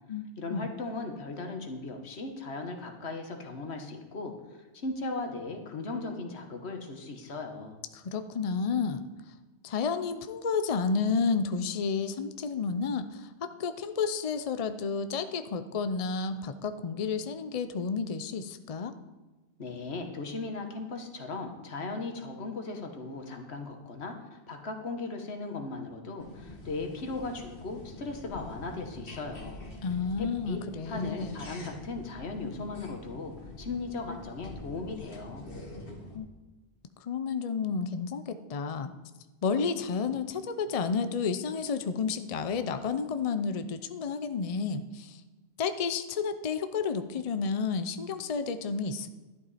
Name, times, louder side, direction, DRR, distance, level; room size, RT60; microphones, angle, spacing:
voice 1, 0.4-4.3 4.7-7.8 19.6-29.6 30.2-30.6 30.9-35.5, left 3 dB, 80° left, 4 dB, 1.6 m, -37 dB
voice 2, 7.9-9.1 9.6-18.9 29.8-31.4 36.1-36.3 37.0-38.9 39.4-45.2 45.6-49.1, left 5 dB, 45° left, 9 dB, 0.6 m, -31 dB
sound 1, 26.2-36.2, left 2 dB, 60° left, 1.9 m, -45 dB
12.0 x 10.5 x 4.2 m, 1.2 s
omnidirectional pair, 1.1 m